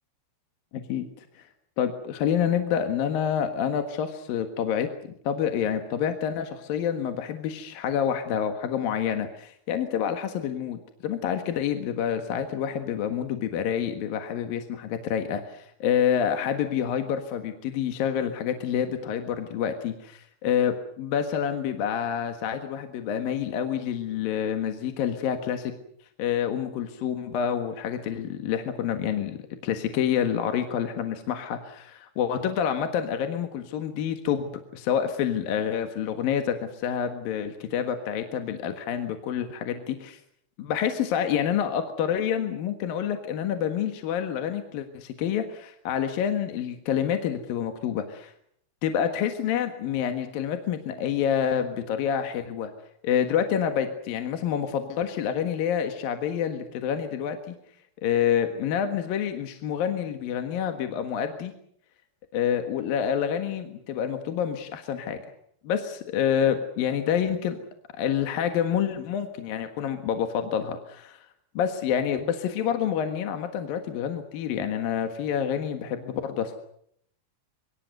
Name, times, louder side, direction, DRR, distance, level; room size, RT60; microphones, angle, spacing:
voice 1, 0.7-1.0 1.4-1.5 1.8-4.9 5.2-25.7 26.2-29.4 29.6-34.5 34.7-40.2 40.6-48.3 48.8-52.7 53.0-57.4 58.0-61.5 62.3-65.2 65.6-67.6 68.0-71.2 71.5-76.6, left 8 dB, 60° left, 7 dB, 2.8 m, -28 dB
25.0 x 24.0 x 6.7 m, 0.69 s
omnidirectional pair, 5.5 m